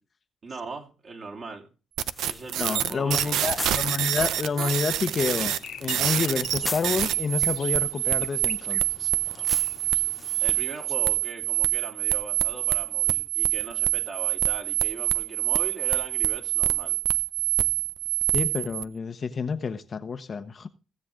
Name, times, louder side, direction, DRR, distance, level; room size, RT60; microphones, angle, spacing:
voice 1, 0.4-1.7 2.3-3.5 10.4-17.0, right 3 dB, 50° right, 1 dB, 3.4 m, -40 dB
sound 1, 2.0-18.8, right 14 dB, 80° right, 0.6 m, -26 dB
sound 2, 2.1-10.8, left 1 dB, 10° left, 0.6 m, -41 dB
voice 2, 2.5-9.1 18.3-20.7, left 5 dB, 40° left, 8 dB, 1.0 m, -29 dB
sound 3, 5.4-10.6, left 8 dB, 70° left, 1.6 m, -46 dB
17.0 x 7.7 x 3.7 m, 0.34 s
cardioid pair, 90°, 0 cm